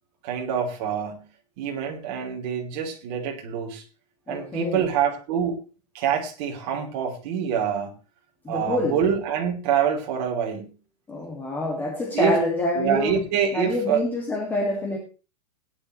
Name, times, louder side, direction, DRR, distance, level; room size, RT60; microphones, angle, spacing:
voice 1, 0.2-1.2 1.6-3.8 4.3-5.6 5.9-7.9 8.5-10.7 12.1-12.4 12.7-14.0, right 8 dB, 40° right, 1 dB, 3.1 m, -26 dB
voice 2, 4.3-4.8 8.4-9.0 11.1-13.2 13.5-15.0, left 2 dB, 10° left, -1 dB, 2.0 m, -26 dB
18.0 x 10.0 x 3.1 m, 0.34 s
supercardioid pair, 165°, 21 cm